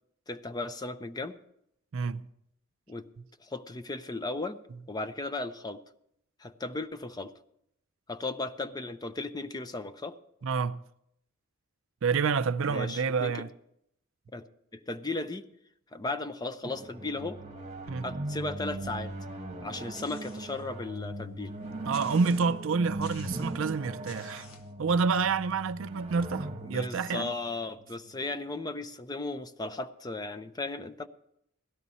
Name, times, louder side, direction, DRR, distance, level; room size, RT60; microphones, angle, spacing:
voice 1, 0.3-1.4 2.9-3.1 3.4-4.6 4.9-5.8 6.4-7.3 8.1-10.2 12.7-13.5 14.3-14.5 14.7-15.5 15.9-17.4 18.0-19.1 19.6-21.6 26.6-31.1, left 2 dB, 20° left, 0.5 m, -36 dB
voice 2, 1.9-2.2 10.4-10.8 12.0-13.5 17.9-18.1 21.8-24.5 24.8-27.3, right 5 dB, 65° right, 0.5 m, -28 dB
sound 1, 16.6-28.3, right 1 dB, 30° right, 1.1 m, -40 dB
sound 2, 19.9-20.6 21.1-21.2 21.9-22.6 23.0-23.6 24.1-24.7, left 5 dB, 70° left, 1.4 m, -51 dB
16.5 x 12.0 x 4.1 m
head